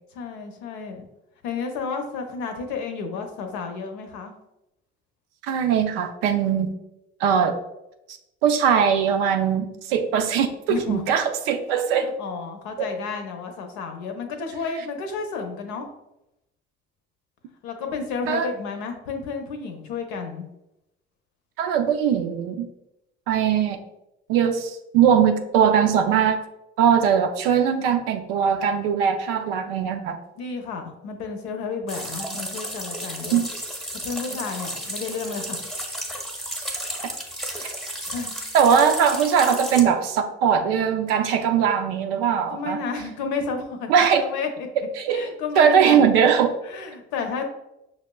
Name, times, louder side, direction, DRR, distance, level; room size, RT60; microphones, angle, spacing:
voice 1, 0.1-1.1 1.4-4.3 10.7-11.0 11.9-15.9 17.6-20.5 30.4-33.4 34.0-35.6 37.5-37.6 38.1-38.3 42.5-43.9 44.2-44.7 45.1-46.1 46.6-47.4, left 5 dB, 70° left, 4 dB, 0.7 m, -31 dB
voice 2, 5.5-6.7 7.2-7.6 8.4-12.1 12.8-12.9 18.3-18.5 21.6-22.7 23.3-23.8 24.3-26.4 26.8-30.2 32.2-32.4 33.3-33.5 37.6-37.7 38.5-42.8 43.9-44.2 45.0-45.2 45.6-46.5, right 7 dB, 80° right, 6 dB, 0.5 m, -20 dB
sound 1, 31.9-39.8, equal, ahead, 0.8 m, -33 dB
5.8 x 2.1 x 2.2 m, 0.88 s
hypercardioid pair, 55°, 30 cm